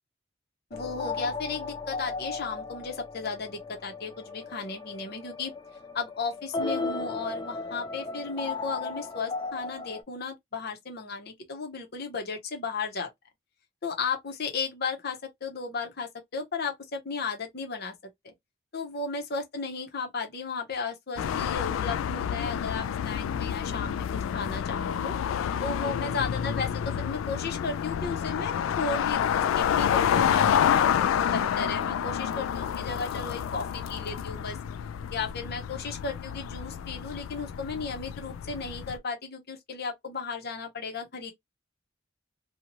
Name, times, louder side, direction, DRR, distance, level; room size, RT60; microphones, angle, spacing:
voice 1, 0.7-5.5 5.9-13.1 13.8-17.9 18.2-18.3 18.7-24.1 24.3-25.1 25.6-34.6 35.1-41.3, left 4 dB, 55° left, 0.9 m, -35 dB
sound 1, 0.7-10.0, left 3 dB, 25° left, 0.5 m, -36 dB
sound 2, 21.2-39.0, left 8 dB, 90° left, 0.3 m, -29 dB
2.7 x 2.3 x 2.9 m
head